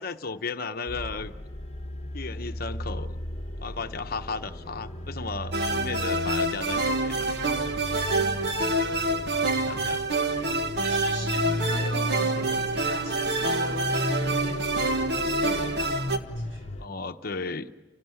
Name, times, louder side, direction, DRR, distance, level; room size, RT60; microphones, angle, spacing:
voice 1, 0.0-1.3 2.1-3.2 3.6-7.3 9.5-10.1 16.8-17.7, left 4 dB, 50° left, 8 dB, 0.9 m, -35 dB
sound 1, 0.9-16.9, left 1 dB, 30° left, 1.3 m, -35 dB
sound 2, 5.5-16.2, right 2 dB, 55° right, 1.4 m, -27 dB
voice 2, 10.8-15.1 15.4-16.7, right 1 dB, 75° right, 3 dB, 7.3 m, -40 dB
30.0 x 18.0 x 9.7 m, 1.2 s
head